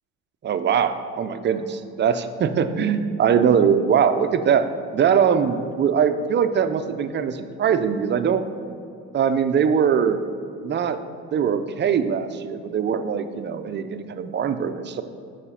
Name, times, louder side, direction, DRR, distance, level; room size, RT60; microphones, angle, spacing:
voice 1, 0.4-4.7 4.9-8.5 9.1-10.2 10.6-11.0 11.3-15.0, right 7 dB, 35° right, 10 dB, 0.5 m, -21 dB
6.7 x 5.0 x 5.6 m, 2.4 s
supercardioid pair, 95°, 34 cm